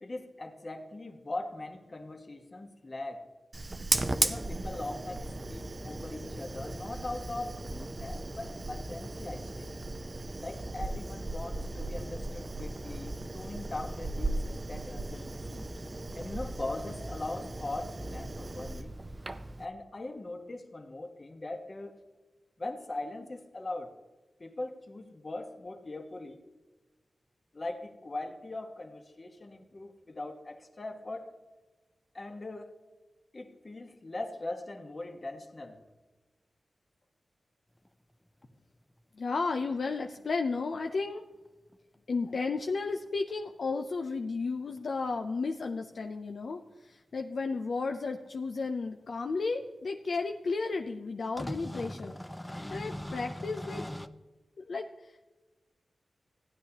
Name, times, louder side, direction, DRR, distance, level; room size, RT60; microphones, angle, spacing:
voice 1, 0.0-3.3 4.2-9.8 10.4-15.7 16.1-18.9 19.6-22.0 22.6-23.9 24.4-26.4 27.5-31.3 32.1-32.7 33.3-35.8, left 2 dB, 40° left, 5 dB, 1.2 m, -40 dB
Fire, 3.5-19.6, right 2 dB, 35° right, 0.6 m, -36 dB
sound 1, 37.9-38.0 38.4-38.5 41.5-41.6 41.7-41.8 43.0-43.3 44.8-44.9 45.2-45.3 46.5-46.6 48.3-48.4 49.2-49.3 49.9-50.1 51.4-54.1, left 1 dB, 10° left, 0.5 m, -40 dB
voice 2, 39.2-41.2 42.1-52.2 52.5-53.8 54.6-55.3, left 4 dB, 70° left, 4 dB, 0.5 m, -33 dB
15.5 x 9.4 x 2.9 m, 1.2 s
cardioid pair, 65°, 0 cm